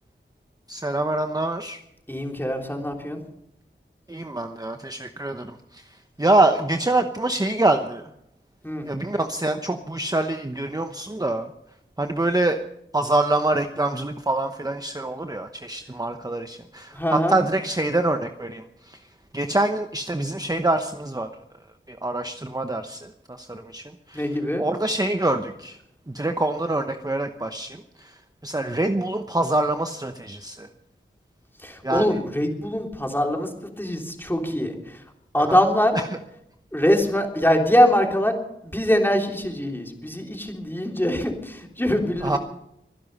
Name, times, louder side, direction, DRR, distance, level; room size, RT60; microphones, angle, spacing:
voice 1, 0.7-1.8 4.1-5.8 6.2-8.1 8.8-11.5 12.0-12.6 12.9-19.0 19.3-21.3 21.9-24.2 24.6-25.8 26.1-30.7 31.8-32.2 35.4-35.6 35.9-36.0 42.2-42.4, right 2 dB, 20° right, 6 dB, 1.0 m, -25 dB
voice 2, 2.1-3.2 8.6-8.9 16.9-17.4 24.1-24.6 31.6-33.5 33.8-35.0 35.3-36.0 36.7-38.3 38.6-42.4, equal, 10° left, 1 dB, 3.4 m, -23 dB
24.0 x 11.0 x 5.5 m, 0.79 s
wide cardioid pair, 60°, 21 cm